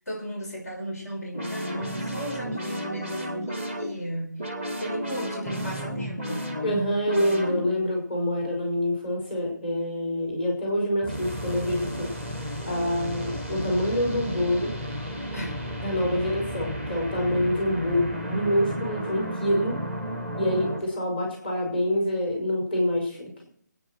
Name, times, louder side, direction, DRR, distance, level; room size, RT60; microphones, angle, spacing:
voice 1, 0.0-4.5 4.8-6.5 15.3-15.7 21.0-21.2, equal, 60° left, 0 dB, 6.1 m, -36 dB
sound 1, 1.3-7.9 11.0-20.8, equal, 10° left, 1.1 m, -33 dB
voice 2, 6.6-12.4 12.6-14.7 15.4-15.5 15.8-19.8 20.4-23.3, left 1 dB, 30° left, 1 dB, 5.5 m, -26 dB
25.0 x 9.6 x 4.6 m, 0.64 s
hypercardioid pair, 175°, 10 cm